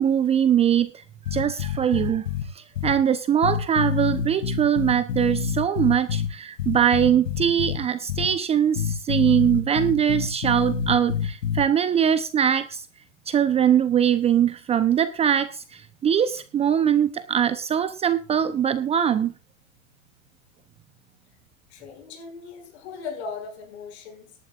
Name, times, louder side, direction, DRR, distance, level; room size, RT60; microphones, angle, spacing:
voice 1, 0.0-2.3 2.5-12.9 13.3-19.3, right 9 dB, 15° right, 0.7 m, -22 dB
sound 1, 1.2-2.4 2.7-2.9 3.4-6.3 6.6-7.8 8.1-8.3 8.7-11.6, left 7 dB, 70° left, 2.9 m, -27 dB
voice 2, 21.7-24.4, left 5 dB, 55° left, 6.4 m, -38 dB
18.5 x 11.5 x 2.5 m
hypercardioid pair, 125°, 40 cm